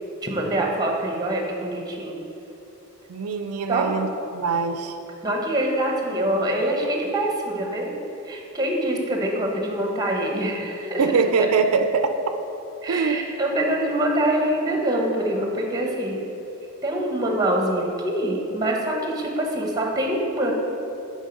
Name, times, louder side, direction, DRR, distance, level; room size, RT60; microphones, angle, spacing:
voice 1, 0.2-2.2 3.7-3.9 5.2-7.9 8.3-11.0 12.8-16.2 16.8-20.5, right 1 dB, 15° right, 0 dB, 1.0 m, -25 dB
voice 2, 3.1-4.9 11.0-12.1 12.9-13.2, right 5 dB, 90° right, 7 dB, 0.5 m, -23 dB
7.3 x 5.2 x 5.3 m, 3.0 s
head